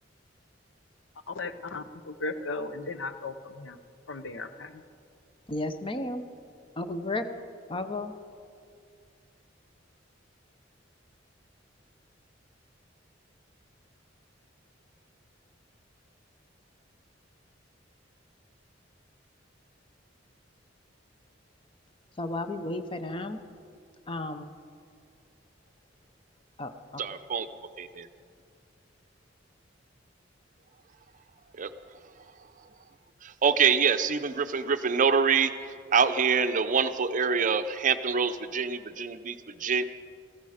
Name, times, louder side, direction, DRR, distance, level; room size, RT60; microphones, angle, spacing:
voice 1, 1.3-3.8 4.1-4.8, left 3 dB, 85° left, 10 dB, 0.8 m, -36 dB
voice 2, 5.5-6.2 6.8-7.3 7.7-8.1 22.2-23.4 24.1-24.5 26.6-27.0, left 2 dB, 30° left, 8 dB, 0.8 m, -33 dB
voice 3, 27.0-28.1 31.5-32.7 33.2-39.8, right 6 dB, 45° right, 11 dB, 0.6 m, -26 dB
15.0 x 14.5 x 5.0 m, 2.3 s
head